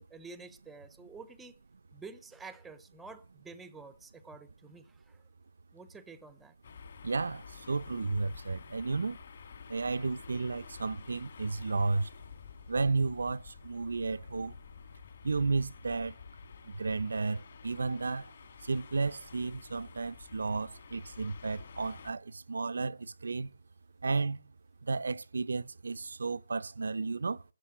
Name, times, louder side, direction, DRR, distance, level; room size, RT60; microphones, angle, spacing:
voice 1, 0.0-1.6 1.9-5.2 5.7-6.5, right 4 dB, 5° right, 0.6 m, -49 dB
sound 1, 6.6-22.1, left 6 dB, 40° left, 2.1 m, -51 dB
voice 2, 7.0-9.2 9.7-12.1 12.7-14.6 15.2-16.2 16.6-18.3 18.6-23.5 24.0-24.4 24.8-27.4, right 3 dB, 70° right, 0.6 m, -33 dB
13.0 x 7.3 x 9.9 m
hypercardioid pair, 170°, 0 cm